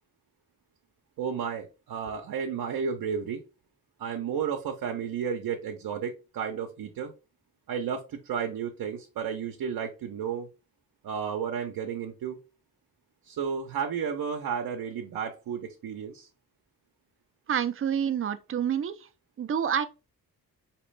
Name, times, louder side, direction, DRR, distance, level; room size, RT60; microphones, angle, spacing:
voice 1, 1.2-3.4 4.0-7.1 7.7-10.5 11.0-12.4 13.2-16.3, right 7 dB, 75° right, 0.7 m, -32 dB
voice 2, 17.5-19.1 19.4-19.9, right 8 dB, 40° right, 0.5 m, -28 dB
4.2 x 3.0 x 3.2 m
cardioid pair, 95°, 35 cm